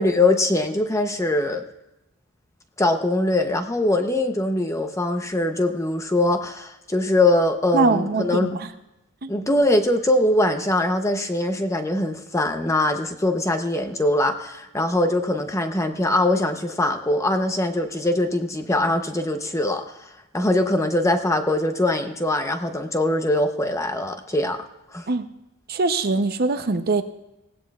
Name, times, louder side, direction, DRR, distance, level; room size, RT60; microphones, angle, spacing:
voice 1, 0.0-1.6 2.8-8.5 9.3-20.1 20.3-24.6 24.9-25.0, left 1 dB, 15° left, 7 dB, 0.7 m, -22 dB
voice 2, 7.7-8.7 9.2-9.3 25.1-25.2 25.7-27.0, right 3 dB, 45° right, 9 dB, 0.7 m, -22 dB
18.5 x 15.5 x 2.4 m, 0.95 s
head